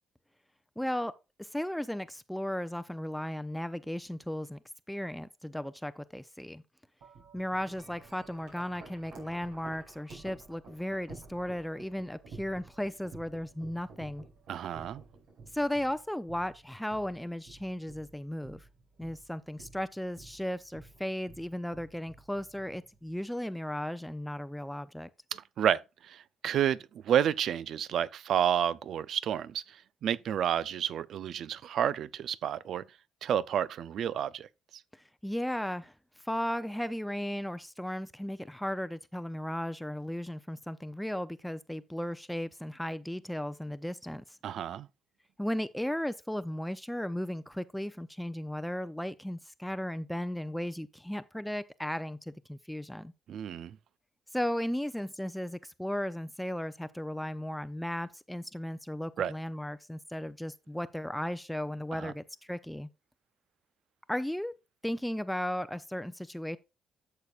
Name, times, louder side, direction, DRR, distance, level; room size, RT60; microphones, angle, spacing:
voice 1, 0.8-1.1 1.4-4.6 4.9-6.6 7.3-14.3 15.5-18.7 19.0-25.1 34.9-35.9 36.2-44.4 45.4-53.1 54.3-62.9 64.1-64.5 64.8-66.6, left 1 dB, 5° left, 0.6 m, -35 dB
Wind chime, 7.0-23.2, right 4 dB, 90° right, 5.3 m, -52 dB
voice 2, 14.5-15.0 25.3-25.8 26.1-26.8 27.0-29.6 30.0-32.8 33.2-34.5 44.4-44.9 53.3-53.8 59.2-59.3 61.9-62.1, right 9 dB, 70° right, 0.5 m, -30 dB
12.5 x 6.8 x 2.4 m
cardioid pair, 90°, 0 cm